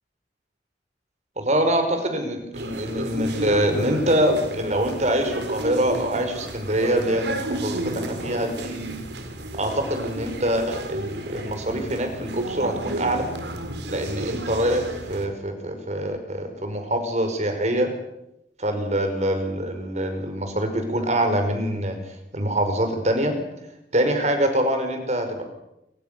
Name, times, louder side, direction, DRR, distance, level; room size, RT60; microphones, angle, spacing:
voice 1, 1.4-8.8 9.5-13.3 13.9-17.9 18.6-22.0 22.3-23.4 23.9-25.4, right 1 dB, 40° right, 6 dB, 5.4 m, -24 dB
sound 1, 2.5-15.3, right 1 dB, 75° right, 3.8 m, -32 dB
28.0 x 25.5 x 6.9 m, 0.84 s
head